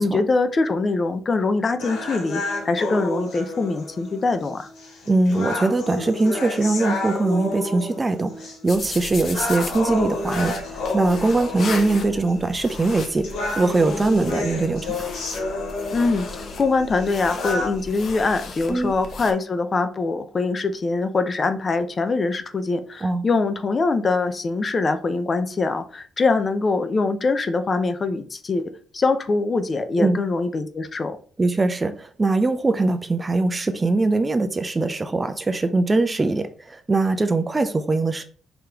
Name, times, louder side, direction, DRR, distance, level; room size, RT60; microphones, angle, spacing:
voice 1, 0.0-4.7 15.9-16.3 16.6-31.2, left 3 dB, 35° left, 0.6 m, -23 dB
sound 1, 1.8-17.8, left 2 dB, 85° left, 2.4 m, -31 dB
voice 2, 5.1-15.0 18.7-19.0 23.0-23.2 30.0-30.2 31.4-38.2, right 3 dB, 25° right, 0.5 m, -22 dB
sound 2, 8.7-19.3, left 4 dB, 55° left, 1.0 m, -36 dB
4.9 x 3.0 x 3.5 m
cardioid pair, 90°, 0 cm